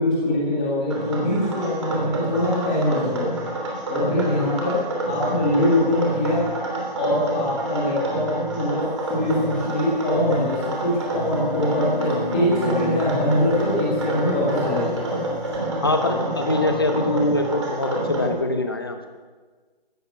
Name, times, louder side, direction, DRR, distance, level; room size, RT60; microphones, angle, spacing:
voice 1, 0.0-3.3 3.9-4.8 5.1-6.4 7.0-8.3 8.5-15.0, left 1 dB, 5° left, -6 dB, 1.8 m, -23 dB
sound 1, 0.9-18.3, right 1 dB, 30° right, 3.1 m, -28 dB
sound 2, 9.5-9.6 10.0-10.1 10.6-14.9 15.5-15.6, left 3 dB, 75° left, 4.2 m, -36 dB
voice 2, 15.8-19.1, left 2 dB, 25° left, 6 dB, 1.0 m, -23 dB
15.0 x 14.0 x 6.6 m, 1.4 s
figure-of-eight pair, 170°, 30 cm